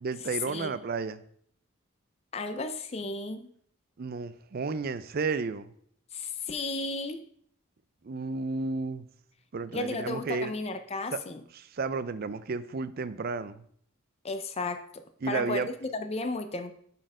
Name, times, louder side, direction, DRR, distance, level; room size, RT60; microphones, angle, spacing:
voice 1, 0.0-1.2 4.0-5.7 8.0-9.1 9.5-10.5 11.1-11.2 11.5-13.6 15.2-15.7, right 4 dB, 45° right, 0.4 m, -32 dB
voice 2, 2.3-3.5 6.1-7.2 9.7-11.4 14.2-16.7, left 3 dB, 30° left, 0.5 m, -34 dB
7.7 x 4.3 x 4.8 m
head